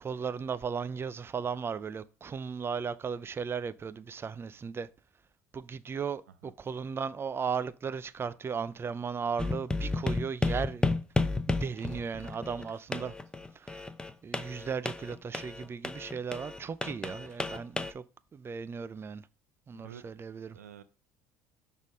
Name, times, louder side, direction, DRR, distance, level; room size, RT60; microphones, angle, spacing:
voice 1, 0.0-4.9 5.5-11.0 11.5-13.1 13.6-13.9 14.2-18.0 18.3-19.2 19.7-20.6, right 6 dB, 30° right, 0.5 m, -36 dB
sound 1, 9.4-17.9, left 2 dB, 10° left, 0.7 m, -32 dB
voice 2, 19.7-20.0 20.5-20.8, right 9 dB, 90° right, 0.5 m, -49 dB
6.2 x 3.7 x 5.1 m
hypercardioid pair, 65°, 8 cm